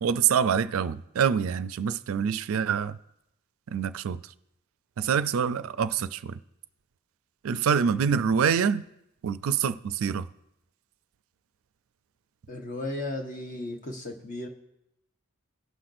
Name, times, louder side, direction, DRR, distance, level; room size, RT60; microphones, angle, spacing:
voice 1, 0.0-3.0 3.7-4.2 5.0-6.4 7.4-8.8 9.2-10.3, right 7 dB, 80° right, 0.4 m, -26 dB
voice 2, 12.5-14.5, left 2 dB, 40° left, 1.1 m, -35 dB
17.5 x 5.8 x 2.6 m
head